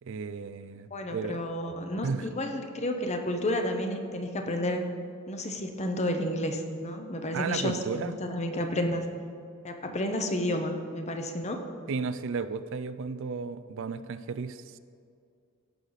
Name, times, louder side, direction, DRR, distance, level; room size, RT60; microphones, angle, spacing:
voice 1, 0.0-1.4 2.0-2.3 7.3-8.2 11.9-14.8, right 5 dB, 60° right, 13 dB, 0.4 m, -34 dB
voice 2, 0.9-4.8 5.3-9.0 9.6-11.6, left 1 dB, 30° left, 5 dB, 0.8 m, -31 dB
16.5 x 6.5 x 4.0 m, 2.3 s
head